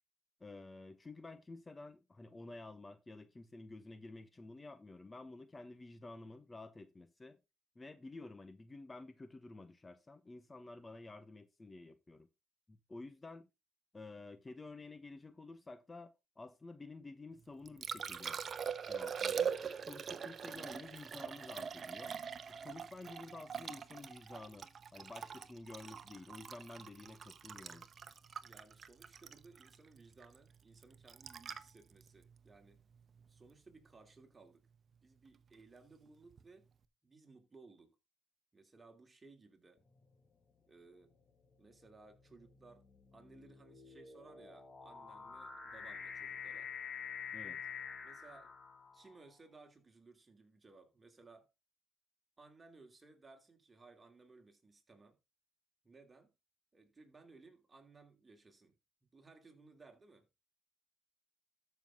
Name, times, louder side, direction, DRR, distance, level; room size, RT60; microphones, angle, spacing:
voice 1, 0.4-7.4 7.7-12.3 12.7-13.5 13.9-18.4 18.8-19.5 19.9-22.1 22.5-27.9 47.3-47.6, left 2 dB, 25° left, 1.1 m, -51 dB
Liquid, 17.4-33.5 36.3-36.4, right 7 dB, 45° right, 1.0 m, -43 dB
voice 2, 28.4-32.8 33.3-34.7 35.0-36.7 37.0-38.0 38.5-39.8 40.7-41.1 41.6-42.8 43.1-46.7 48.0-48.5 48.9-51.5 52.4-55.2 55.8-56.3 56.7-58.7 59.0-60.3, right 3 dB, 25° right, 3.0 m, -60 dB
sound 1, 39.9-40.3 41.1-49.3, left 7 dB, 40° left, 2.2 m, -48 dB
13.0 x 6.0 x 3.7 m
supercardioid pair, 70°, 0 cm